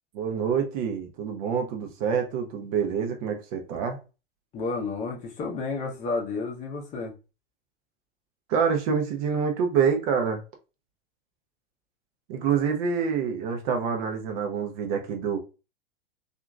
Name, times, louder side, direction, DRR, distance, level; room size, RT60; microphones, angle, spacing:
voice 1, 0.1-4.0 8.5-10.4 12.3-15.4, right 6 dB, 40° right, 0.6 m, -26 dB
voice 2, 4.5-7.1, left 3 dB, 25° left, 0.7 m, -31 dB
2.8 x 2.5 x 2.3 m
figure-of-eight pair, 95°, 30 cm